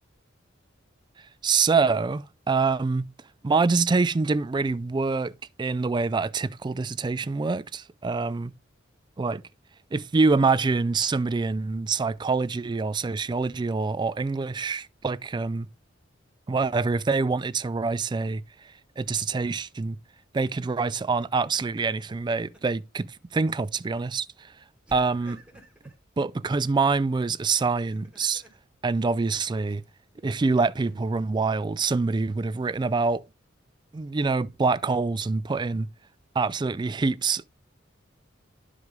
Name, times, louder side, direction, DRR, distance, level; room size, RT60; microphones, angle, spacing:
voice 1, 1.4-3.1 3.4-5.3 5.6-8.5 9.2-9.4 9.9-15.7 16.5-18.4 19.0-20.0 20.3-24.5 24.9-25.4 26.2-28.4 28.8-29.8 30.2-33.2 33.9-35.9 36.3-37.5, right 4 dB, 25° right, 0.3 m, -25 dB
Laughter, 19.0-19.6 21.9-22.8 23.2-23.4 24.9-26.0 27.6-28.6 29.7-30.9, right 1 dB, 5° right, 2.0 m, -52 dB
10.5 x 5.0 x 3.6 m
head